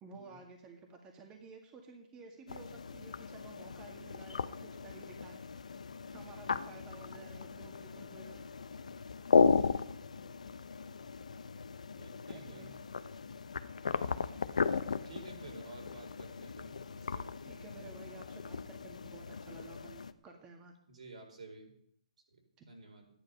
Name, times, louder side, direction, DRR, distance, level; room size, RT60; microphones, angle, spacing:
voice 1, 0.0-5.4 6.1-8.4 12.3-12.7 17.4-20.7 22.6-22.7, right 4 dB, 20° right, 2 dB, 2.0 m, -53 dB
sound 1, 2.5-20.1, left 5 dB, 75° left, 0.8 m, -35 dB
voice 2, 10.1-10.5 11.9-12.8 13.9-14.3 15.0-17.3 20.9-21.7 22.3-22.4 22.7-23.1, right 3 dB, 75° right, 2 dB, 4.8 m, -53 dB
13.5 x 10.5 x 5.5 m, 0.70 s
hypercardioid pair, 135°, 4 cm